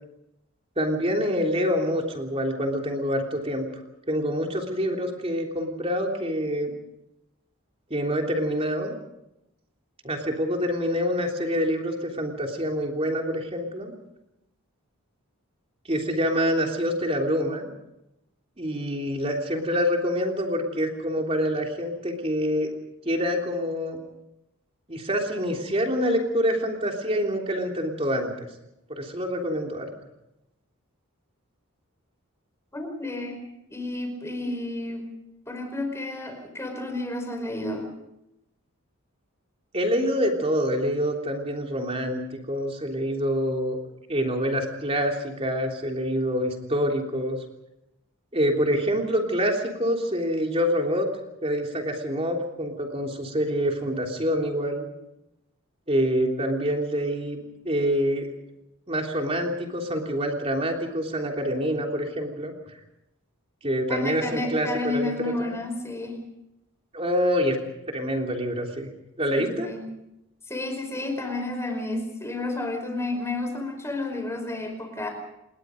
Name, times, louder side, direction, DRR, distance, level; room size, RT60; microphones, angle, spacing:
voice 1, 0.8-3.7 4.1-6.7 7.9-8.9 10.0-13.9 15.9-17.7 18.6-22.7 23.1-24.0 24.9-28.3 28.9-29.9 39.7-42.2 42.5-43.8 44.1-47.4 48.3-51.1 51.4-54.9 55.9-57.4 57.7-58.3 58.9-62.5 63.6-65.1 65.5-65.6 66.9-67.6 67.9-68.9 69.2-69.7, equal, 25° right, 2 dB, 3.4 m, -26 dB
voice 2, 32.7-33.4 33.7-35.1 35.5-37.9 63.9-66.2 69.3-69.8 70.5-75.1, left 2 dB, 10° left, 4 dB, 5.0 m, -31 dB
28.5 x 21.0 x 5.2 m, 0.87 s
head